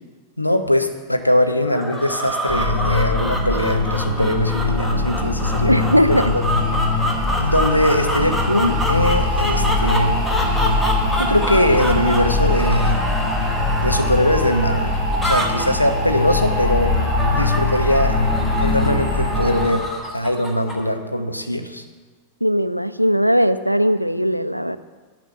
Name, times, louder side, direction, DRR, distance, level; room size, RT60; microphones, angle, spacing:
voice 1, 0.4-6.0 6.3-6.4 7.4-10.2 11.2-13.0 13.8-15.0 15.2-17.0 17.2-18.2 18.6-19.8 20.1-21.8, left 1 dB, 85° left, 7 dB, 0.7 m, -21 dB
sound 1, 1.6-20.9, equal, 5° left, 1.3 m, -28 dB
sound 2, 2.5-19.7, left 2 dB, 35° left, 3.3 m, -21 dB
voice 2, 5.7-6.3 22.4-24.8, equal, 90° right, 13 dB, 0.4 m, -18 dB
9.1 x 5.1 x 6.7 m, 1.4 s
figure-of-eight pair, 90°, 0 cm